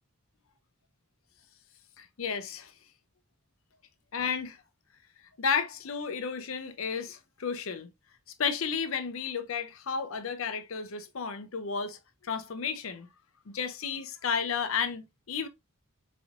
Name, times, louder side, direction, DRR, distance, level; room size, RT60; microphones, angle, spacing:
voice 1, 2.0-2.7 4.1-4.6 5.4-7.9 8.4-13.1 13.5-15.5, left 6 dB, 75° left, 0.6 m, -32 dB
4.1 x 3.1 x 2.4 m
head